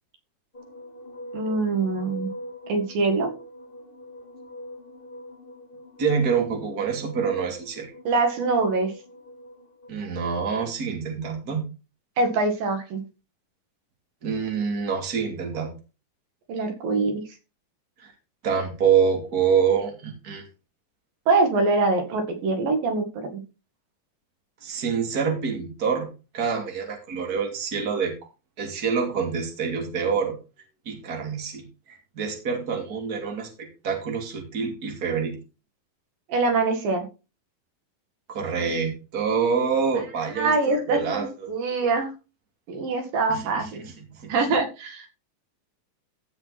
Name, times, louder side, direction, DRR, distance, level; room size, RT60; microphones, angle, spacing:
sound 1, 0.5-9.9, equal, 20° left, 1.4 m, -43 dB
voice 1, 1.3-2.3 2.7-3.3 8.1-8.9 12.2-13.0 16.5-17.2 21.3-23.4 36.3-37.1 40.4-42.1 42.7-43.8 44.3-45.1, right 3 dB, 75° right, 5 dB, 3.7 m, -24 dB
voice 2, 6.0-7.9 9.9-11.6 14.2-15.7 18.0-18.1 18.4-20.4 24.6-26.1 26.3-28.1 28.6-30.3 30.8-35.4 38.3-41.5 43.3-44.3, right 6 dB, 30° right, 3 dB, 2.8 m, -26 dB
15.0 x 6.1 x 4.2 m, 0.30 s
omnidirectional pair, 4.1 m